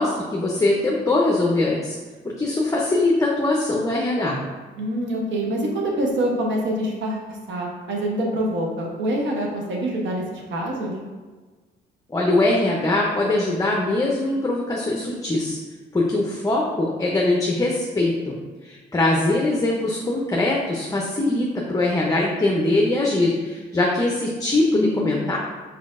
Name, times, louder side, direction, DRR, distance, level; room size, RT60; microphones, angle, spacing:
voice 1, 0.0-2.0 2.4-4.4 12.1-15.6 15.9-18.3 18.6-25.4, left 2 dB, 15° left, -2 dB, 0.6 m, -22 dB
voice 2, 4.8-10.9 24.7-25.2, right 1 dB, 70° right, -1 dB, 0.9 m, -25 dB
4.2 x 4.1 x 2.5 m, 1.3 s
supercardioid pair, 70°, 20 cm